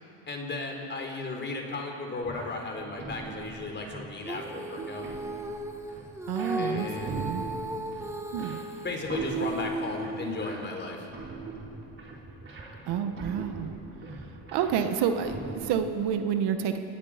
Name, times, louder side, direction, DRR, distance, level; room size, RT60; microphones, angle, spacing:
voice 1, 0.3-5.0 6.5-7.5 8.8-11.1, left 3 dB, 25° left, 2 dB, 4.2 m, -35 dB
sound 1, 2.2-16.0, right 4 dB, 25° right, 4.1 m, -41 dB
Female singing, 4.2-10.7, right 1 dB, 5° right, 1.3 m, -36 dB
voice 2, 6.3-7.4 8.3-8.6 12.9-13.7 14.5-16.8, right 8 dB, 60° right, 8 dB, 1.4 m, -29 dB
28.5 x 19.0 x 5.1 m, 2.9 s
supercardioid pair, 110°, 45 cm